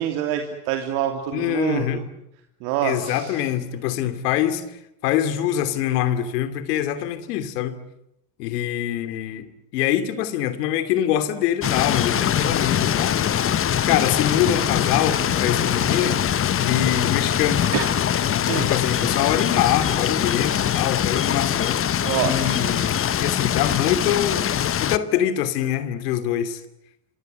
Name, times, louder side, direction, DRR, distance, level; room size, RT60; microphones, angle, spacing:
voice 1, 0.0-2.0 2.6-3.4 17.7-17.9 18.5-18.7 22.0-22.9, right 10 dB, 70° right, 3.2 m, -26 dB
voice 2, 1.3-2.0 2.8-7.8 8.4-9.5 9.7-13.2 13.8-16.2 16.6-17.7 18.3-21.8 22.2-26.6, left 11 dB, 80° left, 2.8 m, -24 dB
sound 1, 11.6-25.0, left 9 dB, 30° left, 1.0 m, -22 dB
26.5 x 25.5 x 8.0 m
supercardioid pair, 105°, 47 cm